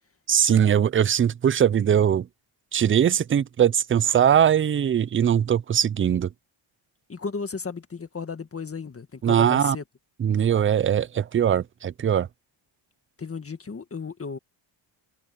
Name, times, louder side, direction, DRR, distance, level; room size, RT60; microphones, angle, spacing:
voice 1, 0.3-2.3 2.7-6.3 9.2-9.8 10.2-12.3, right 9 dB, 30° right, 0.4 m, -21 dB
voice 2, 7.1-9.8 13.2-14.4, left 5 dB, 25° left, 1.8 m, -34 dB
cardioid pair, 120°, 50 cm